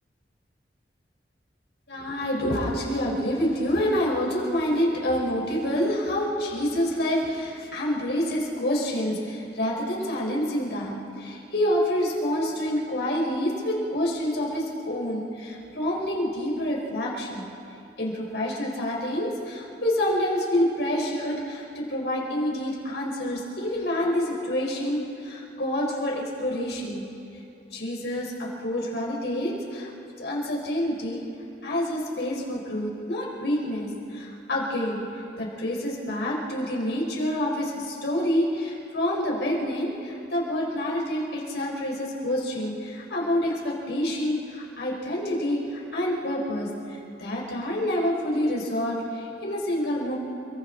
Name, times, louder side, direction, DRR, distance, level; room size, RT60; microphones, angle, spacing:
voice 1, 1.9-17.4 18.0-27.0 27.7-29.9 30.2-31.2 31.6-35.0 35.4-50.2, left 1 dB, 75° left, -2 dB, 4.6 m, -27 dB
29.5 x 22.5 x 4.0 m, 2.7 s
head